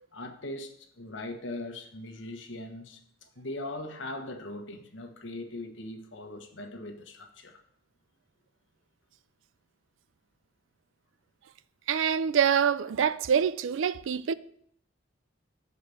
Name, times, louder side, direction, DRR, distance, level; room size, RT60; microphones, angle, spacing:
voice 1, 0.1-3.0 3.4-7.6, left 1 dB, 80° left, 1.2 m, -40 dB
voice 2, 11.9-14.3, right 8 dB, 90° right, 0.4 m, -25 dB
6.7 x 4.8 x 6.9 m
head